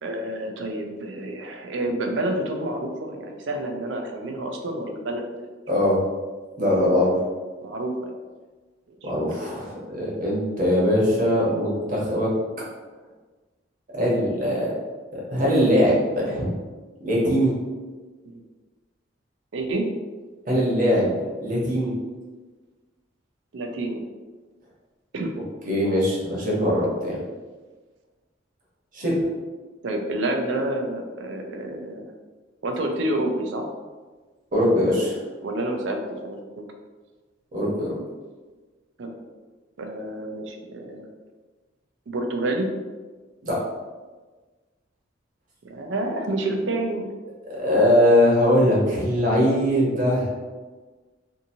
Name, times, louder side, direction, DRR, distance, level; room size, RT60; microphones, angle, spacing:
voice 1, 0.0-5.5 5.8-5.9 7.6-8.1 8.9-9.1 18.3-18.4 19.5-19.9 23.5-24.1 25.1-25.3 29.8-32.1 32.6-33.7 35.4-36.4 39.0-39.2 39.8-41.1 42.1-42.7 45.6-47.1 49.5-49.6, right 1 dB, 70° right, 3 dB, 0.5 m, -29 dB
voice 2, 5.7-6.0 6.6-7.2 9.0-12.3 13.9-14.7 15.1-16.5 17.0-17.5 20.5-21.1 21.4-21.9 25.6-27.2 28.9-29.2 34.5-35.2 37.5-38.0 43.4-43.6 47.5-50.3, equal, 45° right, -5 dB, 0.9 m, -21 dB
2.7 x 2.6 x 2.6 m, 1.3 s
head